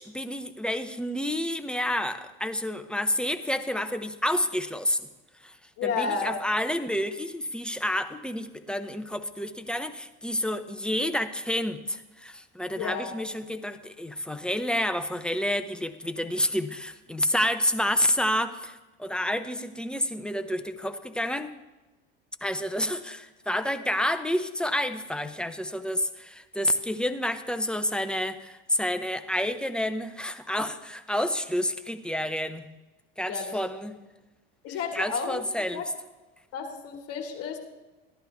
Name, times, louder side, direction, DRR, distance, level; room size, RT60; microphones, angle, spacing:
voice 1, 0.0-5.0 5.4-5.5 5.8-21.5 22.4-32.6 33.2-33.9 34.9-35.8, left 1 dB, 5° left, 9 dB, 0.6 m, -29 dB
voice 2, 5.8-6.4 12.8-13.2 33.3-34.0 34.6-35.9 36.5-37.6, left 5 dB, 50° left, 4 dB, 2.3 m, -32 dB
14.5 x 11.0 x 3.5 m, 1.1 s
supercardioid pair, 105°, 31 cm